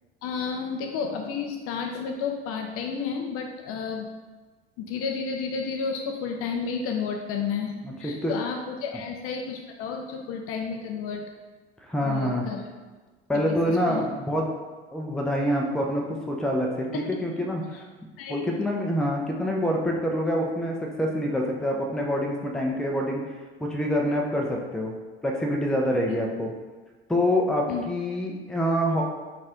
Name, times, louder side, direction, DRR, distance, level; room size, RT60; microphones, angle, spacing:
voice 1, 0.2-4.1 4.8-7.7 8.0-11.2 12.0-12.7 13.3-14.0 16.9-17.0 18.2-18.7 26.1-26.2 27.7-27.8, left 6 dB, 45° left, 3 dB, 0.5 m, -31 dB
voice 2, 7.8-8.3 11.8-12.5 13.3-14.5 14.9-17.8 18.3-23.2 23.6-25.0 25.2-26.5 27.1-29.0, equal, ahead, 0 dB, 0.6 m, -26 dB
4.0 x 2.6 x 3.6 m, 1.3 s
figure-of-eight pair, 70°, 32 cm